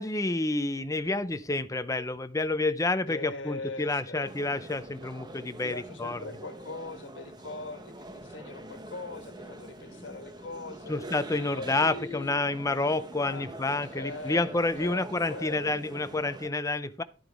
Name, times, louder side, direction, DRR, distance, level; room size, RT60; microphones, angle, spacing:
voice 1, 0.0-6.2 10.9-17.0, left 2 dB, 15° left, 0.6 m, -29 dB
voice 2, 3.1-4.3 5.6-11.0 11.6-12.4 13.2-13.5 13.9-14.5 14.8-15.6, left 3 dB, 90° left, 1.6 m, -41 dB
sound 1, 4.2-16.5, right 1 dB, 25° right, 1.1 m, -45 dB
11.5 x 8.9 x 3.5 m
head